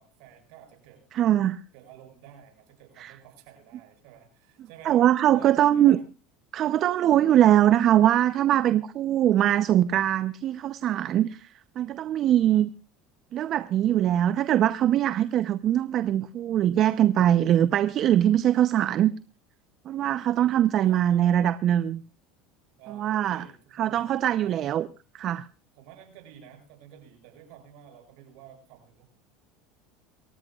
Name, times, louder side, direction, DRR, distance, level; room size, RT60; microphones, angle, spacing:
voice 1, 0.0-1.0 1.7-5.0 5.3-6.0 11.0-11.1 20.8-21.7 22.8-24.8 25.7-29.0, right 9 dB, 70° right, 7.7 m, -51 dB
voice 2, 1.1-1.6 3.0-3.1 4.8-6.0 6.5-11.5 11.8-12.7 13.3-19.1 19.9-22.0 22.9-23.4 23.8-24.9 25.2-25.5, right 11 dB, 50° right, 0.7 m, -22 dB
28.0 x 14.5 x 2.4 m
hypercardioid pair, 90°, 0 cm